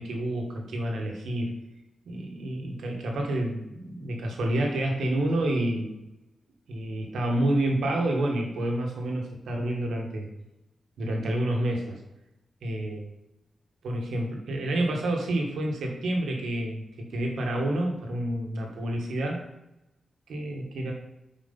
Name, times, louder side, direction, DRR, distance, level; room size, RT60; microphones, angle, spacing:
voice 1, 0.0-1.5 2.0-6.0 6.7-10.3 11.0-12.0 12.6-13.0 13.8-19.4 20.3-20.9, right 1 dB, 85° right, 1 dB, 1.4 m, -29 dB
5.6 x 4.6 x 5.3 m, 0.93 s
cardioid pair, 75°, 0 cm